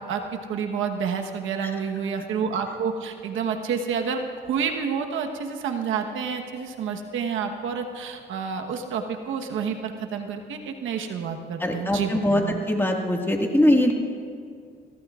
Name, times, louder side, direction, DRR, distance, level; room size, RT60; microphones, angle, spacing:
voice 1, 0.5-12.6, right 6 dB, 80° right, 4 dB, 1.2 m, -29 dB
voice 2, 11.6-13.9, left 1 dB, 10° left, 1 dB, 1.9 m, -22 dB
24.0 x 16.5 x 2.5 m, 2.2 s
cardioid pair, 90°, 20 cm